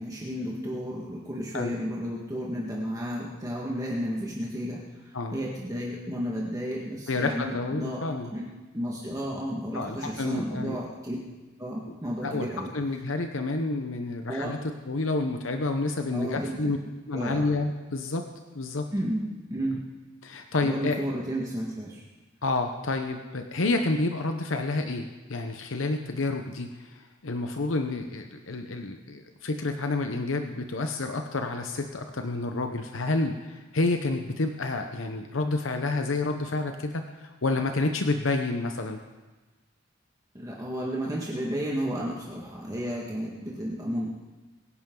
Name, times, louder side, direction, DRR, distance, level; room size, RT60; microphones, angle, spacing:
voice 1, 0.0-8.0 8.3-8.5 8.7-11.2 11.6-12.7 14.3-14.6 16.1-16.7 17.1-17.4 18.9-19.8 20.6-22.0 40.3-44.1, equal, 20° right, -4 dB, 1.8 m, -32 dB
voice 2, 7.1-8.3 9.7-10.8 11.9-12.0 12.2-12.5 12.7-14.6 14.9-16.8 17.1-18.3 18.5-18.9 20.2-21.0 22.4-39.0, left 3 dB, 85° left, 5 dB, 0.9 m, -29 dB
23.0 x 10.5 x 3.9 m, 1.2 s
head